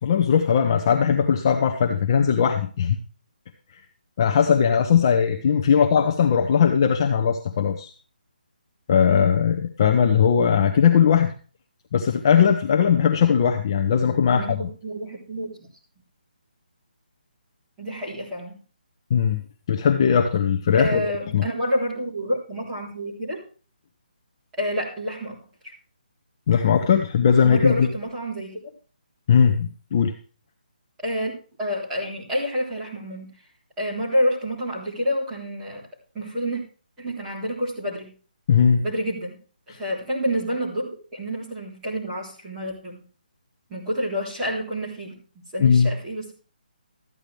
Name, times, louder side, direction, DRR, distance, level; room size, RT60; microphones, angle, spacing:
voice 1, 0.0-3.0 4.2-7.9 8.9-11.3 11.9-14.6 19.1-19.4 19.7-21.0 21.3-21.4 26.5-27.9 29.3-30.1 38.5-38.8 39.7-39.8 45.6-45.9, left 7 dB, 25° left, 4 dB, 0.8 m, -19 dB
voice 2, 14.3-15.7 17.8-18.5 20.7-23.4 24.5-25.4 25.6-25.7 27.4-28.6 31.0-31.3 31.6-33.3 33.8-35.8 36.1-36.6 37.0-38.1 38.8-39.4 39.7-43.0 43.7-46.3, equal, 10° right, -7 dB, 3.7 m, -28 dB
13.5 x 9.9 x 3.4 m, 0.37 s
hypercardioid pair, 175°, 5 cm